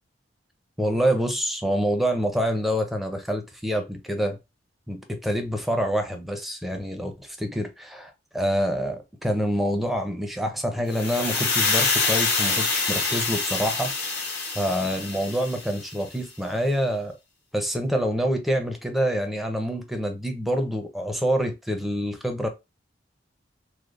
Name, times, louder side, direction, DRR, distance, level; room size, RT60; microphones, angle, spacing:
voice 1, 0.8-4.4 4.9-17.2 17.5-22.5, equal, ahead, 0.5 m, -26 dB
sound 1, 10.9-16.0, left 4 dB, 60° left, 0.9 m, -26 dB
3.1 x 2.1 x 2.4 m
head